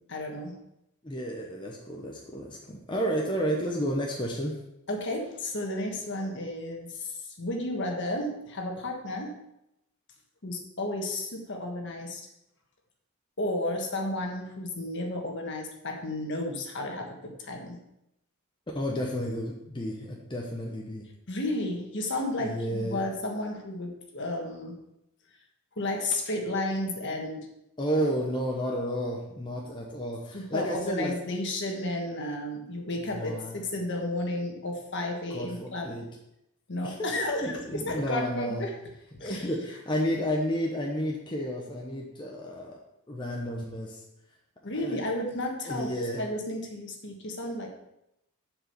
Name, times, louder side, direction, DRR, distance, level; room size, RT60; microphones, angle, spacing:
voice 1, 0.1-0.5 4.9-9.3 10.4-12.3 13.4-17.8 21.3-24.8 25.8-27.5 30.3-36.0 36.7-38.8 39.2-39.5 44.6-47.7, left 1 dB, 55° left, 2 dB, 1.5 m, -32 dB
voice 2, 1.0-4.6 18.7-21.0 22.4-23.0 27.8-31.1 33.1-33.6 35.3-36.1 36.8-38.6 39.2-42.8 43.1-44.0 44.8-45.0 45.6-46.2, equal, 20° left, -2 dB, 1.0 m, -31 dB
7.2 x 5.0 x 6.9 m, 0.85 s
head